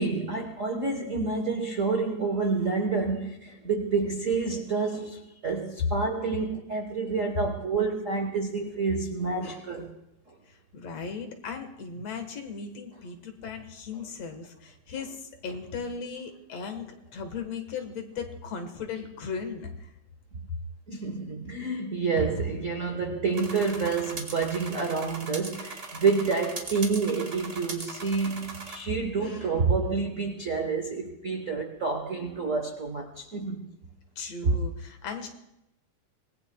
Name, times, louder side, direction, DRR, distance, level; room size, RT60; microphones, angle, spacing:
voice 1, 0.0-9.9 20.9-33.7 34.4-34.6, right 4 dB, 85° right, 0.7 m, -28 dB
voice 2, 10.5-16.9 17.1-19.9 34.2-35.3, left 5 dB, 65° left, 2.4 m, -37 dB
sound 1, 23.3-28.8, right 3 dB, 30° right, 1.8 m, -39 dB
25.0 x 19.0 x 2.2 m
omnidirectional pair, 3.4 m